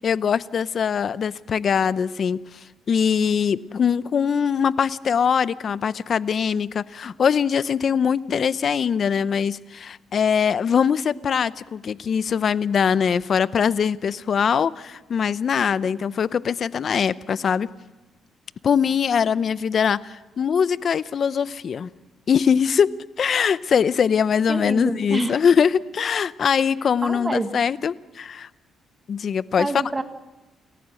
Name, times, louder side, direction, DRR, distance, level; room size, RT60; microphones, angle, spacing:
voice 1, 0.0-2.4 2.9-17.7 18.6-21.9 22.3-22.9 23.2-28.5 29.1-29.7, left 7 dB, 50° left, 17 dB, 0.7 m, -22 dB
voice 2, 24.5-25.4 27.0-27.6 29.6-30.0, right 2 dB, 20° right, 9 dB, 1.5 m, -27 dB
29.5 x 14.5 x 7.7 m, 1.1 s
cardioid pair, 90°, 0 cm